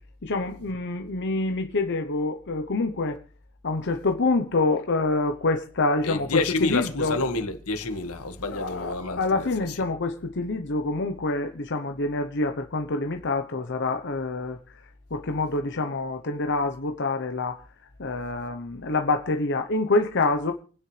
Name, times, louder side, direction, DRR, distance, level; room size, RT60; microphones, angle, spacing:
voice 1, 0.2-3.2 3.6-7.1 8.5-14.8 15.1-17.6 18.0-20.5, left 3 dB, 50° left, 0.9 m, -26 dB
voice 2, 6.0-9.8, left 3 dB, 75° left, 1.8 m, -28 dB
28.5 x 9.7 x 3.3 m
head